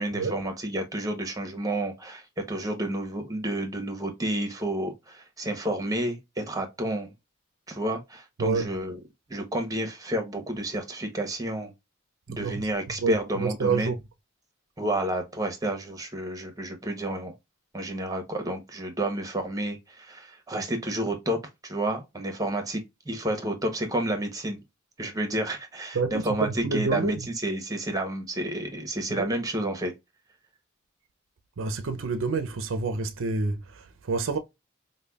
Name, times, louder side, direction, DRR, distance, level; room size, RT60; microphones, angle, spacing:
voice 1, 0.0-7.1 7.7-9.0 9.3-11.7 12.3-13.9 14.8-17.3 17.7-24.6 25.0-27.2 27.4-29.9, right 1 dB, 15° right, 0.9 m, -30 dB
voice 2, 8.4-8.7 12.3-12.7 13.0-14.0 25.9-27.3 29.2-29.3 31.6-34.4, right 4 dB, 65° right, 0.5 m, -28 dB
5.0 x 2.2 x 2.2 m
head